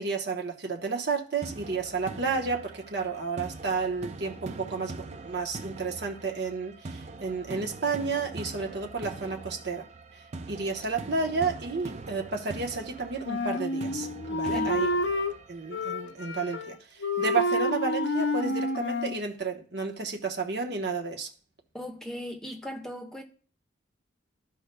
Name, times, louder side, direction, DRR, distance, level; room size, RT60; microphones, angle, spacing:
voice 1, 0.0-9.9 10.5-14.9 15.5-21.3, right 4 dB, 55° right, 1.0 m, -31 dB
sound 1, 1.4-16.4, right 3 dB, 35° right, 0.4 m, -43 dB
Wind instrument woodwind instrument, 13.2-15.3 15.7-16.8 17.0-19.2, left 2 dB, 60° left, 0.6 m, -29 dB
voice 2, 14.4-14.8 21.7-23.2, left 1 dB, 5° left, 0.9 m, -38 dB
14.5 x 5.1 x 2.2 m
head